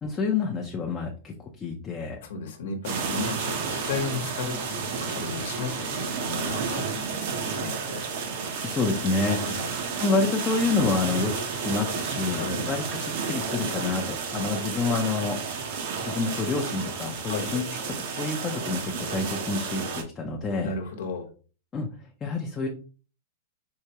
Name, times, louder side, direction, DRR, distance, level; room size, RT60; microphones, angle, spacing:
voice 1, 0.0-2.2 8.6-9.5 10.0-15.4 16.0-20.7 21.7-21.9 22.2-22.7, left 4 dB, 15° left, -1 dB, 0.5 m, -28 dB
voice 2, 2.2-8.0 9.4-9.7 12.3-12.7 17.2-17.5 20.6-21.3, left 4 dB, 70° left, 5 dB, 0.9 m, -34 dB
sound 1, 2.8-20.0, right 5 dB, 55° right, 0.8 m, -31 dB
4.6 x 2.1 x 2.8 m, 0.37 s
supercardioid pair, 155°, 0 cm